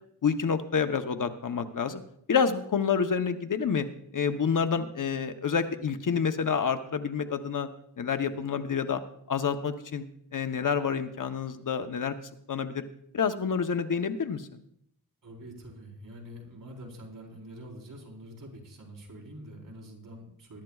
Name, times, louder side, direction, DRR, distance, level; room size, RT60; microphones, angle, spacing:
voice 1, 0.2-2.0 2.3-3.9 4.1-7.7 8.0-9.0 9.3-10.0 10.3-12.1 12.5-12.8 13.1-14.5, left 6 dB, 50° left, 8 dB, 0.8 m, -28 dB
voice 2, 15.2-20.6, equal, 55° right, -2 dB, 4.0 m, -45 dB
22.0 x 12.0 x 2.4 m, 0.70 s
wide cardioid pair, 120°, 39 cm